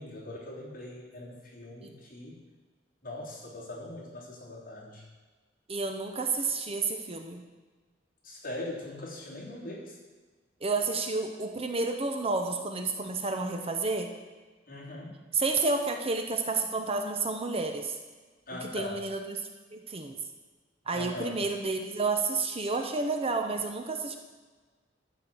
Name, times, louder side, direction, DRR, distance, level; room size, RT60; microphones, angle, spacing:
voice 1, 0.0-2.4 3.0-5.0 8.2-10.0 14.7-15.2 18.5-19.0 20.9-21.4, left 1 dB, 50° left, -5 dB, 3.2 m, -41 dB
voice 2, 5.7-7.4 10.6-14.1 15.3-18.0 18.5-20.1 20.9-24.1, right 3 dB, 35° right, 4 dB, 0.8 m, -30 dB
13.0 x 4.4 x 7.6 m, 1.4 s
head